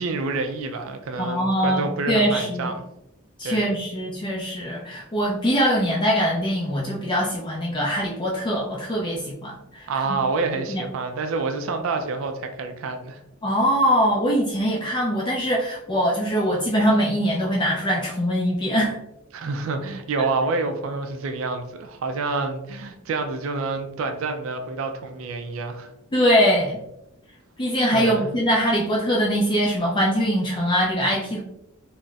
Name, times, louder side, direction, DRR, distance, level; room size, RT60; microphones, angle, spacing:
voice 1, 0.0-2.8 3.4-3.7 9.9-13.2 19.3-25.9 27.9-28.3, right 3 dB, 65° right, 6 dB, 0.4 m, -28 dB
voice 2, 1.2-2.7 3.4-9.9 10.7-10.8 13.4-19.0 20.2-20.3 26.1-26.8 27.6-31.4, equal, 20° left, -3 dB, 0.4 m, -22 dB
3.9 x 2.0 x 2.3 m, 0.84 s
head